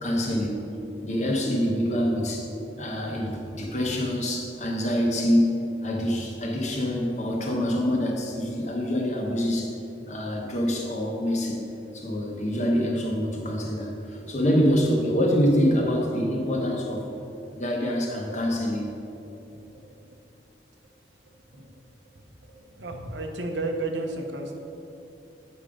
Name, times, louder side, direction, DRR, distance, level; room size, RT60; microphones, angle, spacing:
voice 1, 0.0-0.6 1.0-2.5 2.8-9.7 10.1-11.6 11.9-17.1 17.5-18.8, equal, 40° left, 0 dB, 1.1 m, -25 dB
voice 2, 19.6-19.9 21.5-21.8 22.4-24.5, right 2 dB, 85° right, 3 dB, 0.9 m, -33 dB
8.2 x 5.4 x 5.0 m, 2.8 s
head